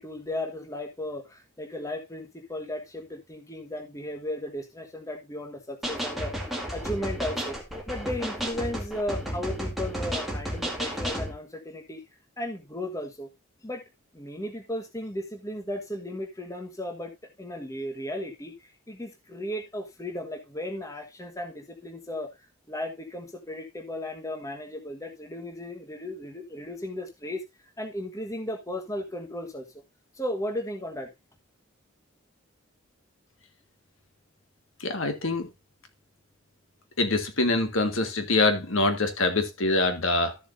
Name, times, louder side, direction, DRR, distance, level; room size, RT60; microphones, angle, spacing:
voice 1, 0.0-6.5 6.7-7.6 7.9-12.0 12.4-13.3 13.6-13.8 14.1-17.1 17.4-22.3 22.7-27.4 27.8-29.6 30.2-31.1, left 1 dB, 15° left, 1.3 m, -35 dB
sound 1, 5.8-11.3, equal, ahead, 2.0 m, -32 dB
voice 2, 34.8-35.5 37.0-40.4, left 2 dB, 80° left, 1.7 m, -25 dB
13.5 x 7.1 x 2.6 m
head